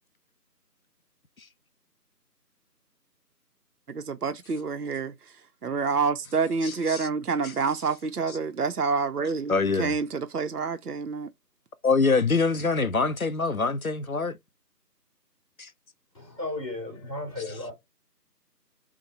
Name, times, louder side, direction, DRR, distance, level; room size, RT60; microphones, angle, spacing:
voice 1, 3.9-5.4 5.6-9.5 9.8-11.3, right 5 dB, 65° right, 0.7 m, -28 dB
voice 2, 6.6-7.1 7.4-7.5 9.5-9.9 11.8-14.4 15.6-15.7, left 4 dB, 60° left, 0.5 m, -25 dB
voice 3, 16.1-17.7, left 2 dB, 20° left, 2.4 m, -34 dB
5.9 x 2.1 x 4.1 m
figure-of-eight pair, 175°, 50 cm